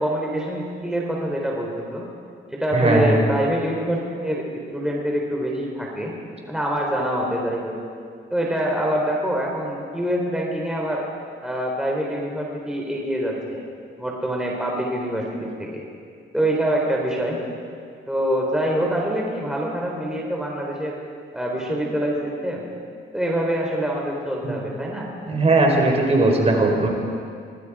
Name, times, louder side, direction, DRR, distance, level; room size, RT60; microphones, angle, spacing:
voice 1, 0.0-2.0 2.5-6.1 6.5-7.8 8.3-11.1 11.4-13.6 14.0-15.8 16.3-17.4 18.1-21.0 21.3-22.6 23.1-25.1, right 1 dB, 5° right, -2 dB, 4.0 m, -25 dB
voice 2, 2.7-3.2 24.4-24.5 25.3-26.9, right 2 dB, 30° right, 1 dB, 4.6 m, -18 dB
26.0 x 20.5 x 5.0 m, 2.3 s
cardioid pair, 90°, 20 cm